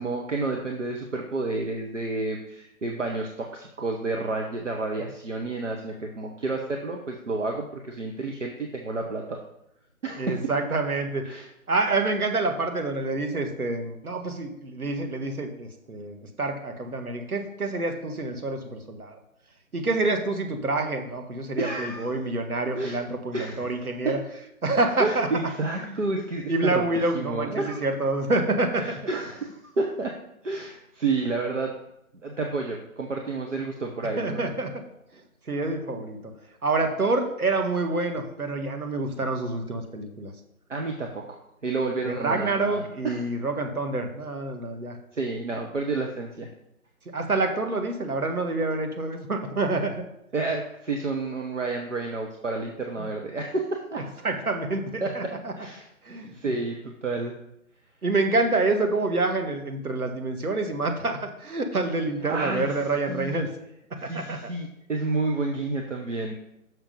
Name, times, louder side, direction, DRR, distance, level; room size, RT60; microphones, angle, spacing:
voice 1, 0.0-9.4 10.0-10.4 11.2-11.5 21.6-22.1 22.8-23.0 23.3-23.8 24.0-24.2 25.0-27.8 28.8-30.2 30.4-31.7 32.2-34.5 40.7-43.3 45.1-46.5 50.3-54.0 55.0-55.9 56.3-57.3 62.3-62.7 63.1-63.4 64.0-66.3, right 3 dB, 55° right, 2 dB, 1.1 m, -30 dB
voice 2, 10.2-11.2 11.7-19.2 19.7-24.2 24.6-25.3 25.8-26.0 26.5-28.8 34.2-34.7 35.5-36.2 36.6-40.3 42.0-45.0 47.1-50.0 54.2-55.5 56.1-56.5 58.0-63.5 64.0-64.4, right 2 dB, 80° right, 5 dB, 1.7 m, -27 dB
6.3 x 6.1 x 5.4 m, 0.80 s
figure-of-eight pair, 175°, 43 cm